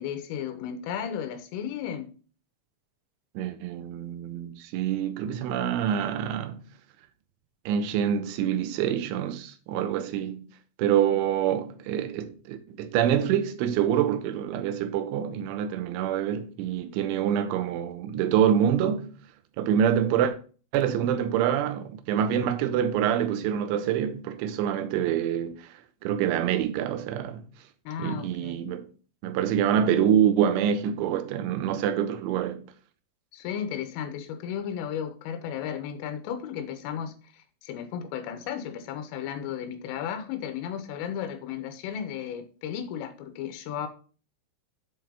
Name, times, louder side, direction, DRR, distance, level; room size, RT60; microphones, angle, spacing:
voice 1, 0.0-2.1 27.9-28.6 33.3-43.9, left 8 dB, 90° left, 3.5 m, -34 dB
voice 2, 3.4-6.6 7.7-10.5 10.8-19.1 19.6-20.3 20.7-25.7 26.0-27.4 28.0-28.9 29.2-32.6, right 9 dB, 80° right, 3.2 m, -26 dB
8.1 x 4.5 x 5.3 m
omnidirectional pair, 5.6 m